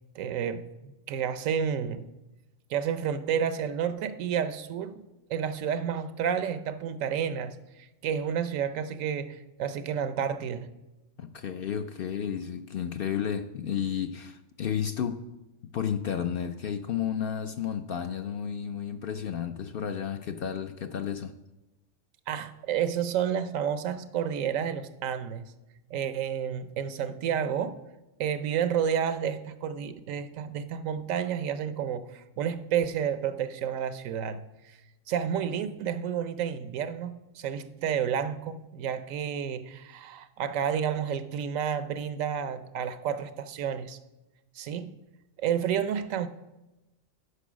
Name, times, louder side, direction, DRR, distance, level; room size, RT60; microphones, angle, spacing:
voice 1, 0.1-2.1 2.7-5.0 5.3-10.7 22.3-25.5 25.9-27.8 28.2-34.4 34.7-34.8 35.1-44.0 44.5-44.9 45.4-46.3, right 8 dB, 90° right, 1.1 m, -30 dB
voice 2, 11.2-15.3 15.6-21.4, left 8 dB, 65° left, 0.6 m, -32 dB
9.9 x 5.4 x 6.2 m
omnidirectional pair, 1.3 m